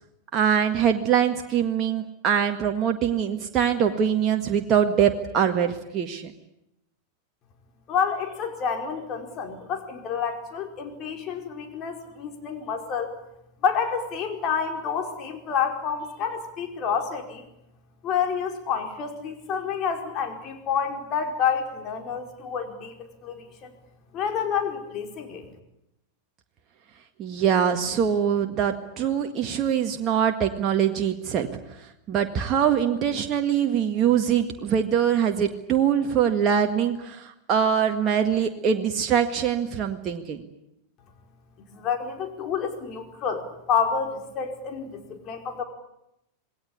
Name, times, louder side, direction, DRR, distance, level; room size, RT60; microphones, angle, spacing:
voice 1, 0.3-6.3 27.2-31.5 32.1-40.4, right 8 dB, 30° right, 4 dB, 1.8 m, -23 dB
voice 2, 7.9-13.1 13.6-17.4 18.0-22.9 23.2-23.7 24.1-25.5 41.7-45.6, left 6 dB, 35° left, 4 dB, 4.8 m, -28 dB
27.5 x 20.0 x 9.8 m, 0.83 s
figure-of-eight pair, 90°, 0 cm